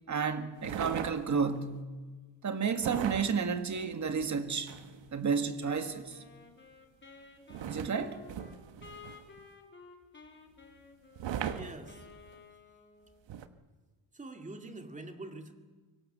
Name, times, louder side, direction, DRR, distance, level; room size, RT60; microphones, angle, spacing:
voice 1, 0.1-1.9 2.4-4.7 5.1-6.2 7.7-8.2, right 5 dB, 35° right, 1.9 m, -31 dB
sound 1, 0.6-1.6 2.8-5.1 7.5-9.4 11.2-12.4 13.3-13.5, right 9 dB, 60° right, 1.5 m, -39 dB
Wind instrument woodwind instrument, 5.6-13.3, left 4 dB, 20° left, 3.0 m, -54 dB
voice 2, 11.5-12.0 14.1-15.5, right 2 dB, 15° right, 2.3 m, -45 dB
24.5 x 24.0 x 6.9 m
cardioid pair, 140°, 49 cm